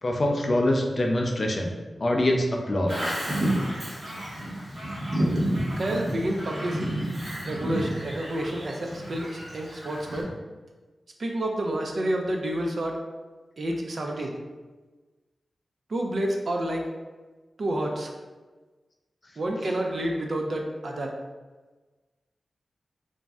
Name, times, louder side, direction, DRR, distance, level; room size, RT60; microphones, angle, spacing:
voice 1, 0.0-3.2 19.7-19.8, left 1 dB, 35° left, 1 dB, 0.3 m, -25 dB
Bird vocalization bird call bird song, 2.9-10.2, right 1 dB, 35° right, 0.9 m, -30 dB
voice 2, 5.8-6.9 7.4-10.3 11.2-13.0 13.6-14.3 15.9-16.9 17.6-18.1 19.4-21.1, right 1 dB, 50° right, 1 dB, 0.3 m, -29 dB
2.5 x 2.0 x 3.4 m, 1.3 s
wide cardioid pair, 140°, 0 cm